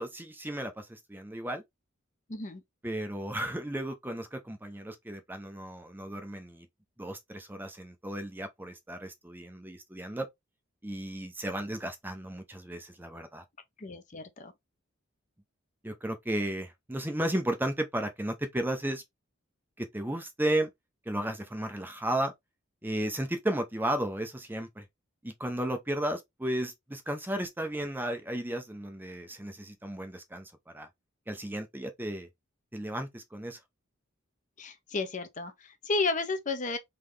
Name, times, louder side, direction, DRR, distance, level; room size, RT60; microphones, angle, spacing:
voice 1, 0.0-1.6 2.8-6.7 7.0-10.3 10.8-13.4 15.8-19.0 19.8-20.7 21.1-22.3 22.8-24.8 25.2-30.9 31.3-32.3 32.7-33.6, right 1 dB, 10° right, 0.6 m, -34 dB
voice 2, 2.3-2.6 13.8-14.5 34.6-36.8, left 3 dB, 35° left, 0.7 m, -32 dB
3.8 x 3.3 x 3.2 m
head